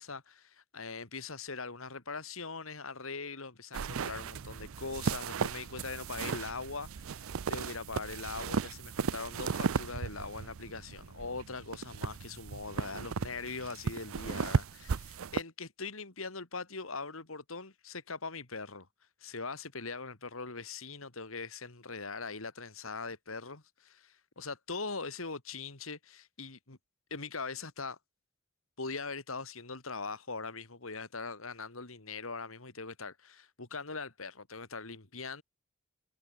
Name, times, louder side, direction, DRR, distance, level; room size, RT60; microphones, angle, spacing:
voice 1, 0.0-18.9 19.2-26.8 27.1-28.0 28.8-35.4, left 4 dB, 75° left, 2.7 m, -41 dB
sound 1, 3.7-15.4, right 5 dB, 75° right, 0.5 m, -36 dB
head